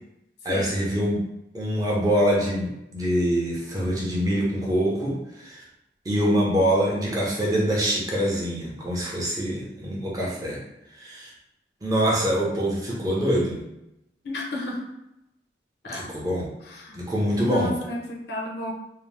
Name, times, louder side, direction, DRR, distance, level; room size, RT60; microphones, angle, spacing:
voice 1, 0.4-1.2 1.5-5.6 6.1-10.6 10.9-11.3 11.8-13.6 15.9-16.5 16.9-17.7, equal, 20° right, -4 dB, 0.6 m, -24 dB
voice 2, 14.2-14.8 15.8-16.1 16.6-17.0 17.4-18.7, left 2 dB, 65° left, -1 dB, 0.6 m, -32 dB
2.7 x 2.0 x 3.2 m, 0.87 s
head